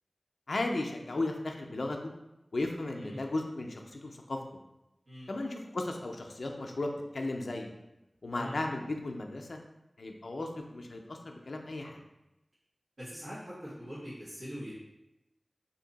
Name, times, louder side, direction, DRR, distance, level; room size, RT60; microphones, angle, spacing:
voice 1, 0.5-2.1 2.5-4.4 5.3-7.7 8.2-9.6 10.0-12.0, left 2 dB, 85° left, 2 dB, 0.4 m, -35 dB
voice 2, 13.0-14.8, equal, 80° right, -12 dB, 1.1 m, -43 dB
2.8 x 2.6 x 3.9 m, 0.94 s
wide cardioid pair, 40°, 0 cm